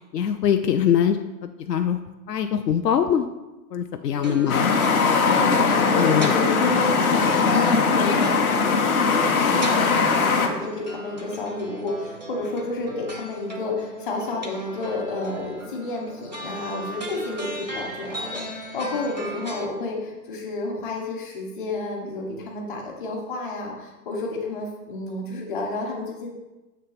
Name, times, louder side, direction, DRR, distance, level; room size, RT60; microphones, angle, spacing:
voice 1, 0.1-1.2 1.4-2.0 2.3-3.3 3.7-4.7 6.0-6.3, left 9 dB, 75° left, 7 dB, 0.6 m, -22 dB
voice 2, 4.2-4.6 5.3-26.3, left 2 dB, 30° left, -1 dB, 1.2 m, -31 dB
sound 1, 4.2-19.7, equal, 30° right, 0.4 m, -37 dB
sound 2, 4.5-10.5, left 5 dB, 60° left, 1.0 m, -20 dB
7.4 x 3.4 x 5.7 m, 1.1 s
hypercardioid pair, 165°, 49 cm